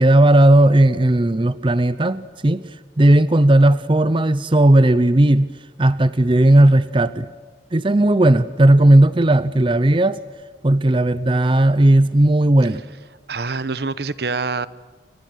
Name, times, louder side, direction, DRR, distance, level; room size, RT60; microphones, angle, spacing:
voice 1, 0.0-2.7 3.0-5.5 5.8-7.3 7.7-10.2 10.6-12.8, right 1 dB, 30° right, 15 dB, 0.7 m, -15 dB
voice 2, 13.3-14.7, right 4 dB, 65° right, 16 dB, 0.9 m, -25 dB
29.5 x 25.5 x 6.4 m, 1.5 s
head